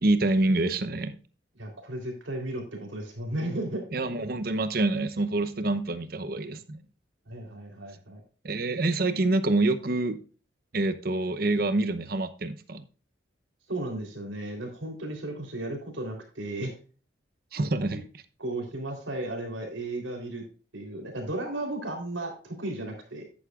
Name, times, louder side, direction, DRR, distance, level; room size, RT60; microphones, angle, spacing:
voice 1, 0.0-1.1 3.9-6.8 8.4-10.2 10.7-12.8 17.5-18.0, right 2 dB, 50° right, 0.8 m, -26 dB
voice 2, 1.6-3.8 7.3-8.2 13.7-16.7 18.4-20.4 20.7-23.2, right 1 dB, 85° right, 3.6 m, -34 dB
10.5 x 9.3 x 2.4 m
head